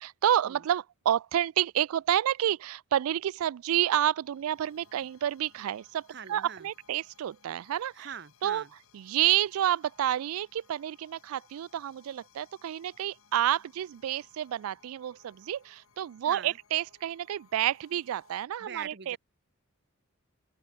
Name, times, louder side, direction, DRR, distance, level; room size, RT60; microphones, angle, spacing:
voice 1, 0.0-8.1 8.4-8.6 8.9-19.2, right 11 dB, 80° right, 0.3 m, -29 dB
sound 1, 3.8-18.5, left 6 dB, 75° left, 2.0 m, -63 dB
voice 2, 6.1-6.7 7.9-8.7 16.2-16.6 18.6-19.2, right 7 dB, 50° right, 1.0 m, -43 dB
open air
head